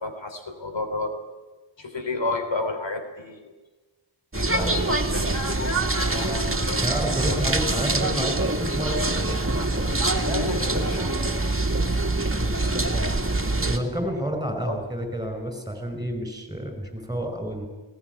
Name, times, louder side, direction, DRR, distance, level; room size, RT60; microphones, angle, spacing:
voice 1, 0.0-1.1 1.8-3.5 4.3-6.9 7.3-7.4 10.3-11.2 14.7-14.8, left 2 dB, 70° left, 6 dB, 3.4 m, -31 dB
sound 1, 4.3-13.8, right 2 dB, 30° right, 2.5 m, -24 dB
voice 2, 6.8-9.1 12.4-13.2 13.6-17.7, right 1 dB, 10° right, 5 dB, 5.7 m, -30 dB
20.5 x 18.0 x 9.6 m, 1.2 s
wide cardioid pair, 75°, 46 cm